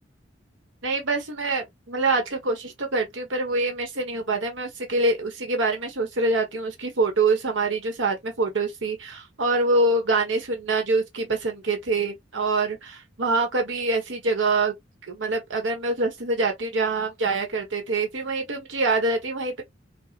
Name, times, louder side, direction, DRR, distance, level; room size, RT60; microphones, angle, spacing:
voice 1, 0.8-14.7 15.1-19.6, right 3 dB, 80° right, 1.1 m, -25 dB
5.3 x 2.0 x 2.7 m
head